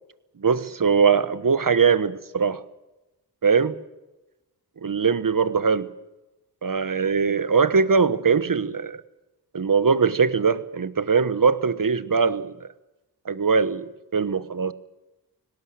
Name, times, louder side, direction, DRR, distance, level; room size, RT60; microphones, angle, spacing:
voice 1, 0.4-2.6 3.4-3.7 4.8-5.9 6.6-9.0 9.5-12.5 13.3-14.7, right 5 dB, 50° right, 14 dB, 1.3 m, -21 dB
18.5 x 18.0 x 9.1 m, 1.0 s
cardioid pair, 50°, 40 cm